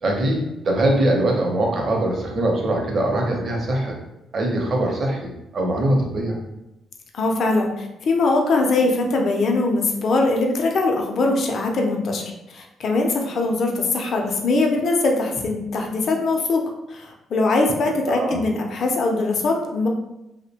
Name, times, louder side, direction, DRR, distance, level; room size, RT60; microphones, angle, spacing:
voice 1, 0.0-4.0 4.3-6.4 18.1-18.4, right 1 dB, 50° right, 0 dB, 0.6 m, -22 dB
voice 2, 7.1-16.6 16.9-19.9, left 3 dB, 60° left, 1 dB, 0.5 m, -21 dB
2.7 x 2.1 x 2.7 m, 0.91 s
cardioid pair, 90°, 0 cm